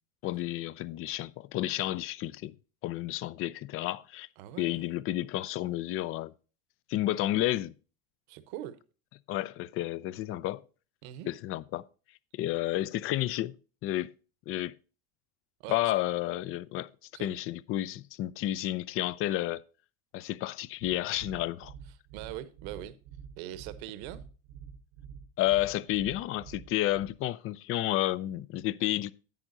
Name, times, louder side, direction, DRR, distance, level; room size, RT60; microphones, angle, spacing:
voice 1, 0.2-2.5 2.8-4.3 4.6-6.3 6.9-7.7 9.3-10.6 11.3-11.8 12.3-13.6 13.8-14.1 14.5-14.7 15.7-16.9 17.2-19.6 20.1-21.7 25.4-29.1, left 15 dB, 40° left, 0.4 m, -31 dB
voice 2, 4.4-4.8 8.3-8.8 11.0-11.3 15.6-15.9 17.1-17.3 22.1-23.0 23.4-24.2, right 13 dB, 70° right, 1.0 m, -41 dB
sound 1, 20.8-27.2, right 7 dB, 50° right, 0.7 m, -48 dB
10.5 x 8.8 x 2.7 m
supercardioid pair, 125°, 34 cm